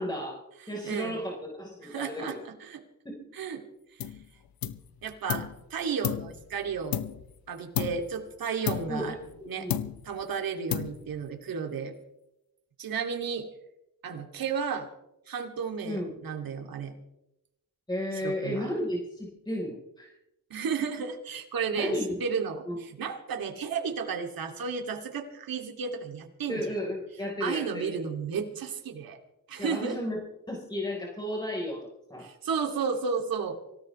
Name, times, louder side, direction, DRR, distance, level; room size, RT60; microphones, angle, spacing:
voice 1, 0.0-2.4 3.0-3.3 8.9-9.1 9.6-9.8 15.8-16.1 17.9-20.1 21.7-22.2 22.6-22.8 26.5-28.0 29.6-30.2 30.5-32.3, left 1 dB, 10° left, -2 dB, 4.3 m, -33 dB
voice 2, 0.7-1.2 1.8-2.8 3.3-3.6 3.9-4.0 5.0-7.0 7.5-9.2 9.5-9.7 10.0-11.9 12.8-13.5 14.0-14.9 15.3-16.9 18.1-18.7 20.5-26.6 27.4-29.2 29.5-30.0 32.2-33.6, right 6 dB, 75° right, 3 dB, 2.7 m, -33 dB
sound 1, 4.0-4.3 4.6-5.6 6.0-7.4 7.7-8.2 8.7-9.4 9.7-10.2 10.7-11.3, left 10 dB, 80° left, 0.9 m, -33 dB
25.0 x 17.5 x 3.3 m, 0.88 s
cardioid pair, 85°, 35 cm